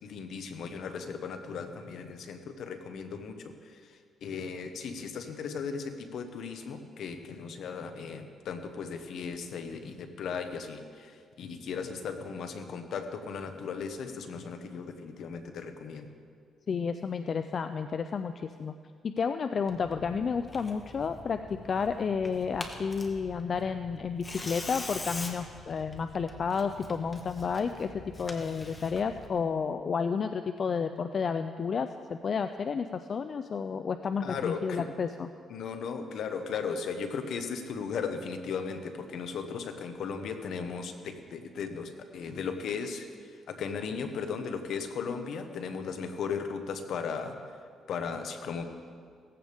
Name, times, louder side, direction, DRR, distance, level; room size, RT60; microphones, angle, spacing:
voice 1, 0.0-16.1 34.2-34.9 35.5-47.6 47.9-48.6, left 5 dB, 70° left, 7 dB, 1.3 m, -37 dB
voice 2, 16.7-18.7 19.0-35.3, left 6 dB, 45° left, 9 dB, 0.5 m, -31 dB
Tearing, 19.7-29.3, left 2 dB, 25° left, 1.6 m, -44 dB
17.5 x 15.0 x 3.6 m, 2.1 s
cardioid pair, 90°, 0 cm